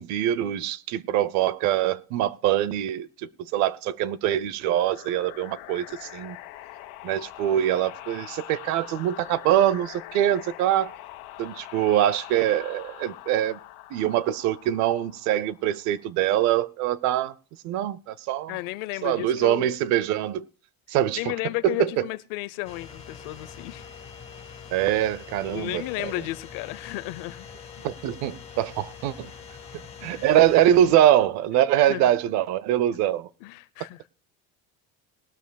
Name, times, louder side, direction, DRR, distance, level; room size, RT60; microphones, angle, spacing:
voice 1, 0.0-6.4 7.0-10.9 11.4-13.6 13.9-17.3 17.6-18.6 19.0-20.5 20.9-21.3 21.6-22.1 24.7-26.1 27.8-29.3 30.0-33.3, right 12 dB, 55° right, 0.6 m, -23 dB
sound 1, 4.7-16.0, left 15 dB, 85° left, 1.4 m, -43 dB
voice 2, 18.5-19.7 21.2-23.8 25.5-27.5 30.0-30.2 31.8-32.1 33.4-34.1, left 19 dB, 70° left, 0.7 m, -33 dB
sound 2, 22.6-30.9, left 6 dB, 20° left, 1.6 m, -44 dB
20.0 x 12.5 x 2.3 m
cardioid pair, 170°, 35 cm